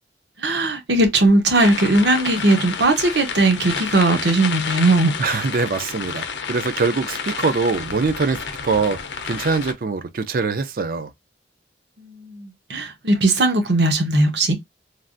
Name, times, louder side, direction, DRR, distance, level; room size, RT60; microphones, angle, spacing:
voice 1, 0.4-5.1 12.0-14.5, right 2 dB, 70° right, 0.9 m, -18 dB
sound 1, 1.5-9.7, left 6 dB, 75° left, 0.6 m, -30 dB
voice 2, 5.2-11.1, right 4 dB, 50° right, 0.4 m, -23 dB
3.3 x 2.4 x 2.5 m
head